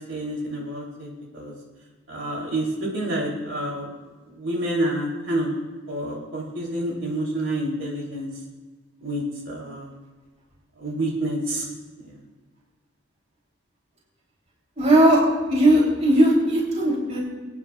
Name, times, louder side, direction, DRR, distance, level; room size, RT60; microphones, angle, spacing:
voice 1, 0.1-1.5 2.1-3.9 4.3-5.5 5.9-8.3 9.0-9.9 10.8-11.7 12.0-12.2, right 1 dB, 65° right, -3 dB, 3.4 m, -28 dB
voice 2, 14.8-15.2 15.5-17.2, right 1 dB, 35° right, -4 dB, 3.3 m, -18 dB
24.5 x 9.6 x 2.4 m, 1.3 s
head